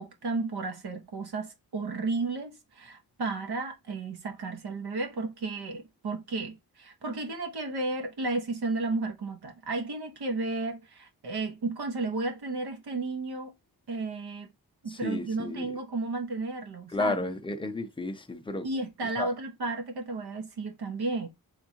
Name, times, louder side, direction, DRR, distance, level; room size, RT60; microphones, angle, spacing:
voice 1, 0.0-13.5 13.9-14.5 14.8-17.2 18.6-21.3, right 3 dB, 80° right, 1.3 m, -33 dB
voice 2, 14.9-15.7 16.9-18.7 19.2-19.3, left 2 dB, 15° left, 0.5 m, -32 dB
4.6 x 3.5 x 2.8 m
wide cardioid pair, 140°, 39 cm